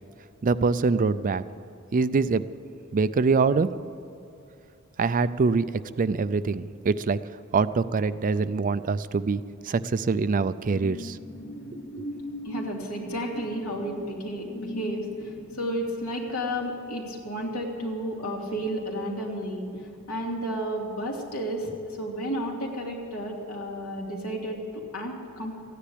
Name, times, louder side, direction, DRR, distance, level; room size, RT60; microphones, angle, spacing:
voice 1, 0.4-1.4 1.9-2.4 2.9-3.7 5.0-5.7 6.0-7.2 7.5-11.2 11.9-12.1, right 4 dB, 40° right, 14 dB, 0.4 m, -24 dB
sound 1, 10.5-18.7 19.1-19.3, left 1 dB, 50° left, 1.3 m, -41 dB
voice 2, 12.4-25.5, equal, 80° left, -1 dB, 2.7 m, -32 dB
14.5 x 10.0 x 8.5 m, 2.7 s
head